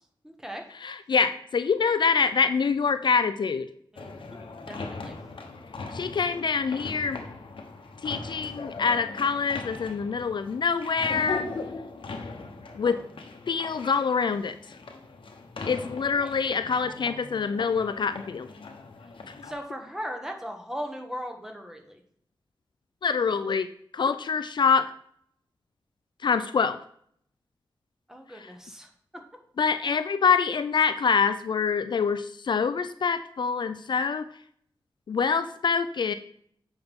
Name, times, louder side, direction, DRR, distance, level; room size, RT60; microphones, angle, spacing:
voice 1, 0.2-0.6 3.9-4.4 4.7-5.2 15.6-15.8 16.1-16.3 16.8-16.9 19.4-22.0 28.1-28.9, equal, 5° right, 3 dB, 1.2 m, -38 dB
voice 2, 0.8-3.7 5.9-7.2 8.0-11.5 12.8-13.0 13.5-14.6 15.7-18.5 23.0-23.7 23.9-24.9 26.2-26.8 29.6-34.3 35.1-36.1, left 5 dB, 60° left, 11 dB, 0.3 m, -25 dB
sound 1, 4.0-19.5, left 3 dB, 85° left, 0.9 m, -40 dB
7.8 x 5.5 x 3.6 m, 0.64 s
wide cardioid pair, 95°, 9 cm